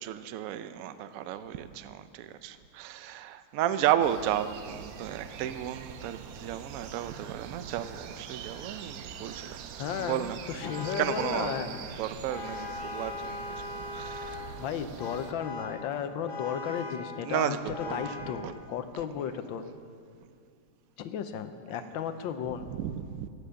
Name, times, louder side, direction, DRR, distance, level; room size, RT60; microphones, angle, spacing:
voice 1, 0.0-9.6 10.0-10.4 11.0-13.4 13.7-14.4 17.2-18.5 22.5-23.3, right 11 dB, 70° right, 12 dB, 0.8 m, -33 dB
sound 1, 4.0-15.3, right 7 dB, 85° right, 1.4 m, -44 dB
voice 2, 9.8-11.7 14.5-19.7 21.0-22.7, left 8 dB, 85° left, 10 dB, 1.5 m, -34 dB
Vehicle horn car horn honking, 10.6-11.5 12.3-14.5 15.0-15.8 16.3-17.1 17.7-18.3, left 3 dB, 60° left, 1.8 m, -39 dB
17.0 x 8.5 x 6.3 m, 2.3 s
omnidirectional pair, 2.1 m